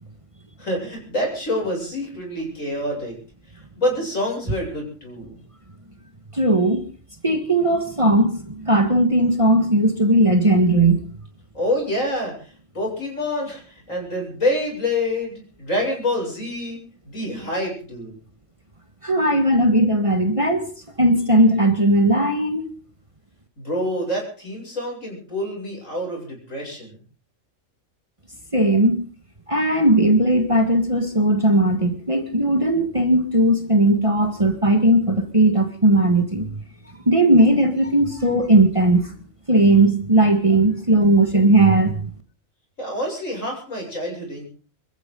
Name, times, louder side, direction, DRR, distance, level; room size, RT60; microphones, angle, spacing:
voice 1, 0.6-3.2 3.8-5.4 11.5-16.8 17.0-18.1 23.6-27.0 42.8-44.4, left 1 dB, 70° left, 0 dB, 8.2 m, -27 dB
voice 2, 6.3-6.8 7.2-11.0 19.0-20.7 21.0-22.7 28.5-29.1 29.5-36.5 37.1-39.1 39.5-42.0, right 1 dB, 25° right, 6 dB, 1.9 m, -17 dB
25.0 x 14.5 x 4.0 m, 0.39 s
omnidirectional pair, 1.4 m